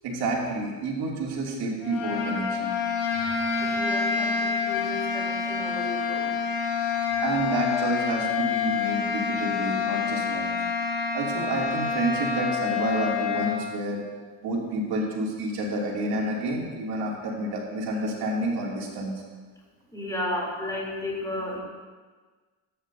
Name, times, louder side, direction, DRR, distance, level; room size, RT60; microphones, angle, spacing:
voice 1, 0.0-2.8 7.2-10.5 11.1-14.0 14.4-19.1, right 2 dB, 55° right, -2 dB, 2.8 m, -29 dB
sound 1, 1.8-13.6, left 5 dB, 90° left, 1.9 m, -27 dB
voice 2, 3.5-6.4 6.9-7.2 19.9-21.6, left 1 dB, 10° left, -3 dB, 3.2 m, -34 dB
13.5 x 9.2 x 2.7 m, 1.4 s
supercardioid pair, 85°, 45 cm